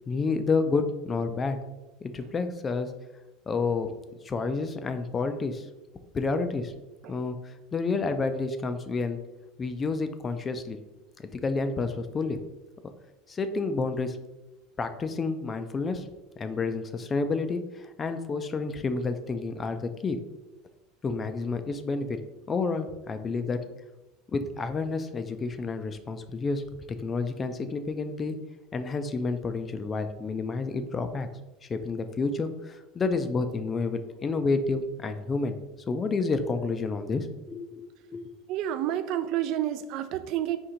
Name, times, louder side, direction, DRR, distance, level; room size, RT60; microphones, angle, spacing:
voice 1, 0.1-1.6 2.0-2.9 3.5-3.9 4.2-5.6 6.1-6.7 7.1-9.2 9.6-10.8 11.2-12.4 13.3-14.2 14.8-16.1 16.4-20.2 21.0-22.2 22.5-23.6 24.3-26.6 27.0-28.4 28.7-31.3 31.6-35.6 35.9-38.3, left 4 dB, 20° left, 9 dB, 0.3 m, -29 dB
voice 2, 38.5-40.6, right 11 dB, 55° right, 11 dB, 0.3 m, -29 dB
4.3 x 2.6 x 3.7 m, 1.0 s
supercardioid pair, 135°, 0 cm